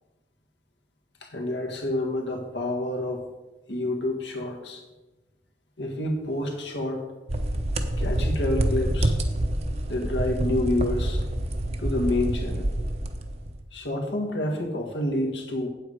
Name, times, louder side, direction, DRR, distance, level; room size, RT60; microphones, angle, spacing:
voice 1, 1.2-3.3 3.7-4.8 5.8-7.0 8.0-9.1 9.9-11.2 11.8-12.7 13.7-15.7, left 1 dB, 75° left, 3 dB, 1.6 m, -28 dB
sound 1, 7.3-13.6, right 1 dB, 35° right, 0.8 m, -27 dB
8.5 x 7.7 x 5.1 m, 1.1 s
head